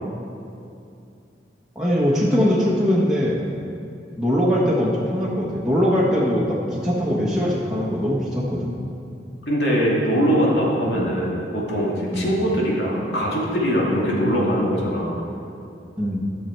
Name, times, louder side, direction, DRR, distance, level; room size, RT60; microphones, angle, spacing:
voice 1, 1.7-3.4 4.2-8.7 10.9-11.1 12.1-12.3 14.0-14.1 16.0-16.2, equal, 5° right, -7 dB, 1.2 m, -21 dB
voice 2, 9.5-15.2, equal, 75° left, -4 dB, 2.3 m, -22 dB
13.5 x 6.6 x 4.5 m, 2.6 s
head